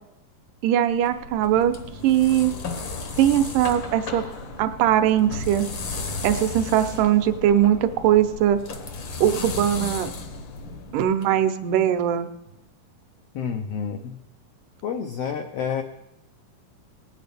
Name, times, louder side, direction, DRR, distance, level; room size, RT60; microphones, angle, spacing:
voice 1, 0.6-1.7 2.0-2.5 3.2-4.2 4.6-5.7 6.2-8.6 9.2-10.1 10.9-12.3, right 11 dB, 85° right, 9 dB, 2.2 m, -20 dB
sound 1, 0.9-11.2, left 3 dB, 65° left, 1.2 m, -34 dB
voice 2, 13.3-14.2 14.8-15.8, left 7 dB, 90° left, 5 dB, 1.4 m, -29 dB
19.5 x 8.8 x 3.4 m, 0.85 s
omnidirectional pair, 3.7 m